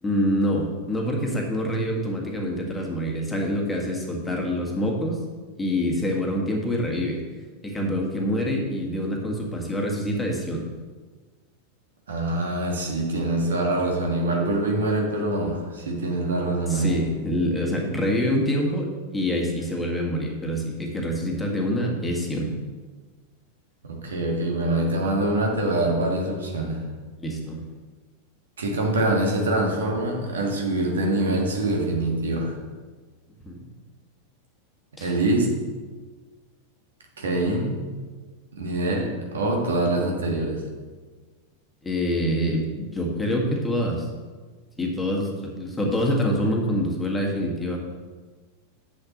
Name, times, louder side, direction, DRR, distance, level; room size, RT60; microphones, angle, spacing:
voice 1, 0.0-5.2 5.6-7.2 7.6-10.7 16.7-22.5 27.2-27.6 33.4-33.7 35.0-35.1 41.8-44.1 44.8-47.8, equal, 10° left, -1 dB, 1.8 m, -26 dB
voice 2, 12.1-17.0 23.8-26.9 28.6-32.5 35.0-35.5 37.2-37.8 38.6-40.6, right 2 dB, 65° right, 0 dB, 1.8 m, -24 dB
10.5 x 7.6 x 3.1 m, 1.4 s
figure-of-eight pair, 90°, 0 cm